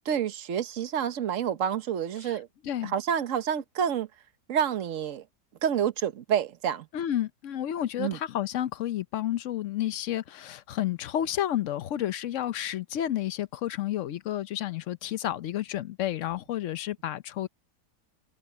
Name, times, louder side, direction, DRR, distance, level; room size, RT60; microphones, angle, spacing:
voice 1, 0.1-2.5 2.8-4.1 4.5-5.2 5.6-6.9 8.0-8.2, right 8 dB, 55° right, 1.4 m, -28 dB
voice 2, 6.9-17.5, left 12 dB, 60° left, 0.9 m, -31 dB
omnidirectional pair, 1.8 m